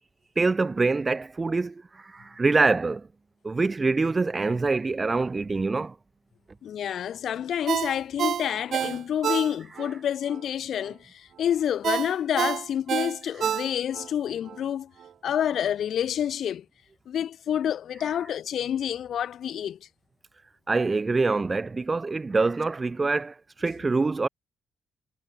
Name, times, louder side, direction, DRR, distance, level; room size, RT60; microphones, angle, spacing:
voice 1, 0.3-3.1 3.4-5.9 20.7-24.3, right 3 dB, 25° right, 1.5 m, -25 dB
voice 2, 6.6-14.9 15.2-16.6 17.1-19.8, left 9 dB, 65° left, 1.8 m, -28 dB
Ringtone, 7.7-9.9 10.3-10.4 11.8-14.1 14.5-14.6, right 9 dB, 60° right, 1.4 m, -28 dB
cardioid pair, 90°, 0 cm